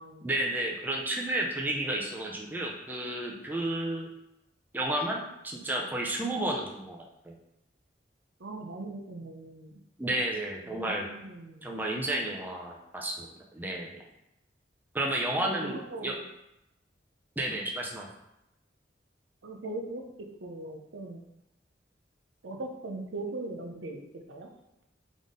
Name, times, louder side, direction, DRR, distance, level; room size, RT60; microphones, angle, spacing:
voice 1, 0.2-4.1 4.7-7.3 10.0-11.1 11.6-14.0 14.9-16.1 17.4-18.1, right 1 dB, 10° right, 0 dB, 0.5 m, -32 dB
voice 2, 8.4-9.8 10.6-11.6 15.3-16.2 19.4-20.0 20.4-21.2 22.4-24.0 24.3-24.5, right 2 dB, 90° right, 2 dB, 0.6 m, -40 dB
3.9 x 3.6 x 3.6 m, 0.86 s
head